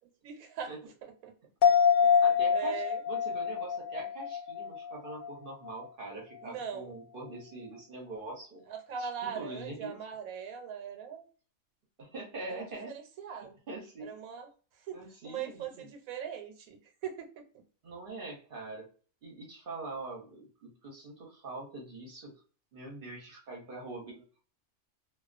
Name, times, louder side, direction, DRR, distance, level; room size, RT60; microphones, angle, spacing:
voice 1, 0.2-0.7 1.0-1.3 2.0-2.2 2.5-3.0 6.4-6.9 8.7-11.2 12.5-13.6 14.0-14.5 14.9-17.6, right 7 dB, 85° right, 4 dB, 1.1 m, -40 dB
sound 1, 1.6-5.3 5.7-5.8, left 7 dB, 80° left, 0.4 m, -26 dB
voice 2, 2.2-8.6 9.0-9.9 12.0-12.9 13.7-14.1 14.9-15.9 17.8-18.9 19.2-22.3 22.7-24.4, right 2 dB, 50° right, -1 dB, 0.8 m, -43 dB
2.3 x 2.3 x 2.4 m, 0.38 s
omnidirectional pair, 1.4 m